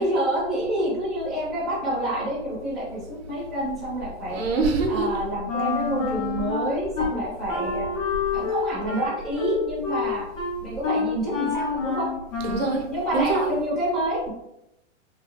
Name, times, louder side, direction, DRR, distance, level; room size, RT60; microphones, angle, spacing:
voice 1, 0.0-4.4 4.9-7.9 8.3-10.2 10.6-12.1 12.9-14.3, right 1 dB, ahead, -9 dB, 0.6 m, -27 dB
voice 2, 4.3-5.1 12.4-12.9 13.1-13.5, right 3 dB, 55° right, 0 dB, 0.8 m, -24 dB
Wind instrument woodwind instrument, 5.5-7.1 7.5-12.8, left 5 dB, 90° left, 1.2 m, -28 dB
3.0 x 2.4 x 2.4 m, 0.86 s
hypercardioid pair, 150°, 37 cm